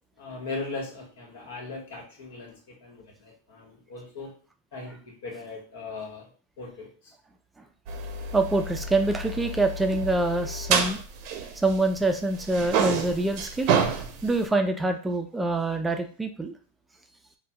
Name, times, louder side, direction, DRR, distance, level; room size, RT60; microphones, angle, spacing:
voice 1, 0.2-4.3 4.7-6.3 6.6-6.9, left 3 dB, 80° left, -1 dB, 1.3 m, -38 dB
sound 1, 7.9-12.1 12.4-14.5, right 5 dB, 55° right, 0.5 m, -29 dB
voice 2, 8.3-11.0 11.6-13.7 14.2-16.5, right 2 dB, 10° right, 5 dB, 0.3 m, -25 dB
4.0 x 2.2 x 2.2 m, 0.40 s
hypercardioid pair, 115°, 0 cm